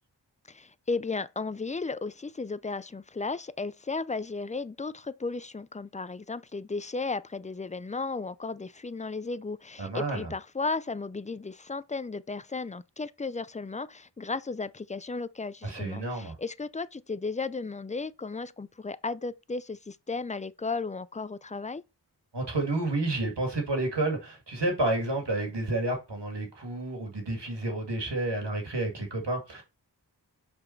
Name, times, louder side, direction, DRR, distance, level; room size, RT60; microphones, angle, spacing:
voice 1, 0.5-21.8, left 3 dB, 20° left, 0.4 m, -35 dB
voice 2, 9.8-10.3 15.6-16.4 22.3-29.6, right 2 dB, 75° right, 2.1 m, -30 dB
5.5 x 4.2 x 4.4 m
wide cardioid pair, 50°, 42 cm